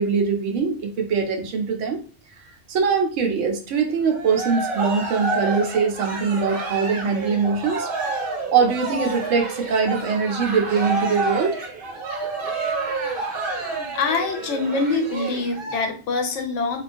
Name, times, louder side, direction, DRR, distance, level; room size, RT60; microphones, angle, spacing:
voice 1, 0.0-2.0 2.7-7.9 8.5-11.6, right 5 dB, 85° right, 3 dB, 0.9 m, -22 dB
Cheering, 4.0-15.7, right 3 dB, 55° right, 0.8 m, -29 dB
voice 2, 13.9-16.8, left 3 dB, 80° left, 4 dB, 0.9 m, -24 dB
2.4 x 2.1 x 2.5 m, 0.38 s
omnidirectional pair, 1.2 m